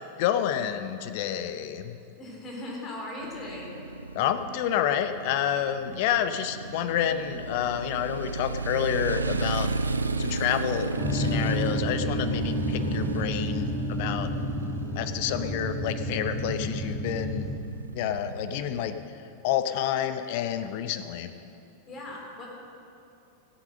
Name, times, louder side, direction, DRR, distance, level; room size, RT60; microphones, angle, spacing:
voice 1, 0.2-2.0 4.1-9.7 10.2-14.3 14.9-17.5 17.9-18.9 19.4-21.3, left 10 dB, 50° left, 10 dB, 0.7 m, -29 dB
voice 2, 2.2-3.7 21.9-22.5, left 1 dB, 25° left, -2 dB, 3.6 m, -38 dB
Motorcycle, 3.2-19.0, right 3 dB, 80° right, 0.4 m, -34 dB
sound 1, 10.9-17.6, equal, ahead, 1.5 m, -30 dB
15.5 x 8.4 x 6.5 m, 2.7 s
figure-of-eight pair, 90°, 0 cm